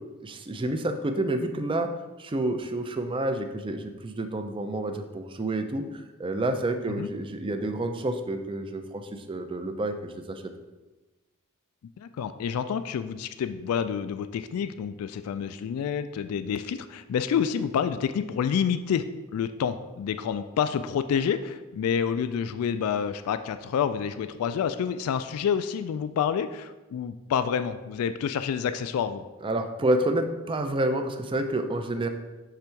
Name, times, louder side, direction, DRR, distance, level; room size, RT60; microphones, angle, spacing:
voice 1, 0.2-1.9 2.2-10.4 29.4-32.1, right 1 dB, 25° right, 7 dB, 0.4 m, -29 dB
voice 2, 12.0-29.2, left 7 dB, 75° left, 14 dB, 0.3 m, -28 dB
6.7 x 3.5 x 4.4 m, 1.2 s
head